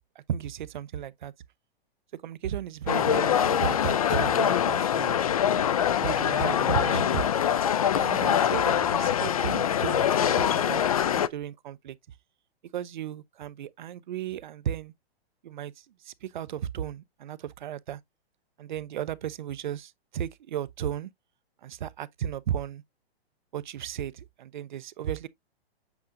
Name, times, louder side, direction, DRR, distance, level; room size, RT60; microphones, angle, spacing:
voice 1, 0.1-1.3 2.1-5.2 6.0-7.2 7.9-12.0 12.7-14.9 15.4-18.0 18.6-21.1 21.6-22.8 23.5-25.3, right 10 dB, 50° right, 0.7 m, -35 dB
sound 1, 2.9-11.3, left 9 dB, 35° left, 0.4 m, -24 dB
8.3 x 4.9 x 2.7 m
hypercardioid pair, 170°, 31 cm